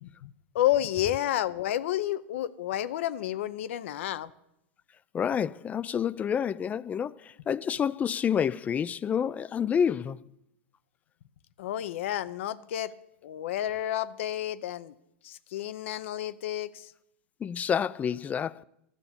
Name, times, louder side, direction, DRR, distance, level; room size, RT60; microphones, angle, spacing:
voice 1, 0.0-4.3 11.6-12.9 13.2-14.9 15.2-16.9, left 12 dB, 65° left, 0.7 m, -30 dB
voice 2, 5.1-10.2 17.4-18.6, left 8 dB, 20° left, 0.4 m, -28 dB
12.0 x 6.8 x 8.6 m
hypercardioid pair, 110°, 7 cm